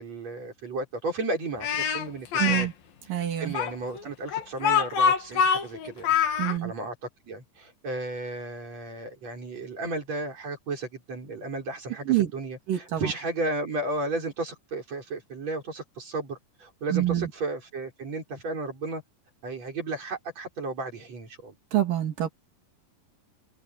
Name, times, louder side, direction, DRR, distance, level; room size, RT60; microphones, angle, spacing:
voice 1, 0.0-2.7 3.4-7.0 7.3-19.0 19.4-21.5, right 2 dB, 50° right, 7.2 m, -34 dB
Speech, 1.6-2.7 3.5-6.6, left 7 dB, 85° left, 4.1 m, -24 dB
voice 2, 2.4-2.7 3.1-3.5 6.4-6.7 12.1-12.3 12.7-13.1 16.9-17.3 21.7-22.3, right 13 dB, 75° right, 4.2 m, -26 dB
omnidirectional pair, 4.0 m